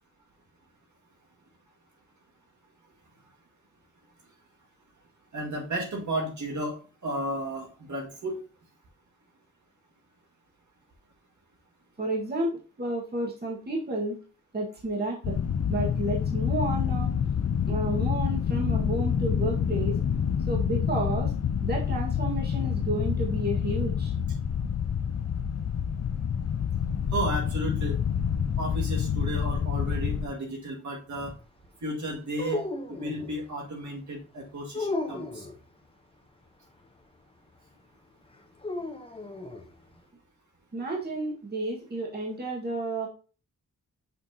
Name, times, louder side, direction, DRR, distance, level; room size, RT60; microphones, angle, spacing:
voice 1, 5.3-8.4 27.1-28.0 28.6-31.3 31.8-32.6 32.9-35.5, right 1 dB, 65° right, -1 dB, 2.0 m, -33 dB
voice 2, 12.0-14.2 14.5-15.4 15.7-17.1 17.7-20.0 20.5-21.3 21.6-24.1 40.7-43.1, right 1 dB, 30° right, -2 dB, 1.6 m, -31 dB
sound 1, 15.2-30.3, left 7 dB, 50° left, 0.6 m, -27 dB
sound 2, 32.3-33.4 34.7-35.6 38.6-39.7, left 2 dB, 15° left, 0.8 m, -34 dB
6.7 x 5.8 x 2.8 m, 0.35 s
wide cardioid pair, 170°, 32 cm